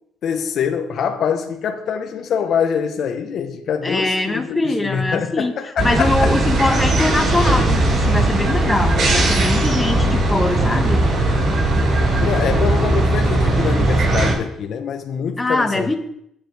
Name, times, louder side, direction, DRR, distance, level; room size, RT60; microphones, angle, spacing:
voice 1, 0.2-6.3 12.2-15.9, left 7 dB, 65° left, 1.2 m, -24 dB
voice 2, 3.8-5.5 5.8-11.0 15.4-16.0, left 2 dB, 20° left, 2.1 m, -22 dB
sound 1, 5.8-14.3, right 2 dB, 55° right, 5.7 m, -18 dB
19.5 x 7.1 x 3.5 m
hypercardioid pair, 55°, 0 cm